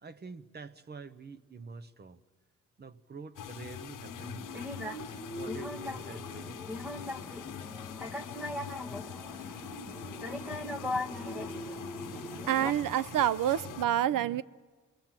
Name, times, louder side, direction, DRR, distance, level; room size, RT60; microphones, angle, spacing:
voice 1, 0.0-2.2 2.8-4.9 5.3-6.9, right 4 dB, 30° right, 0.8 m, -47 dB
sound 1, 3.4-13.9, left 10 dB, 75° left, 0.9 m, -44 dB
sound 2, 4.0-12.7, left 1 dB, 5° right, 1.1 m, -39 dB
voice 2, 12.2-14.4, right 11 dB, 85° right, 0.6 m, -28 dB
28.0 x 20.0 x 7.5 m
wide cardioid pair, 165°, 32 cm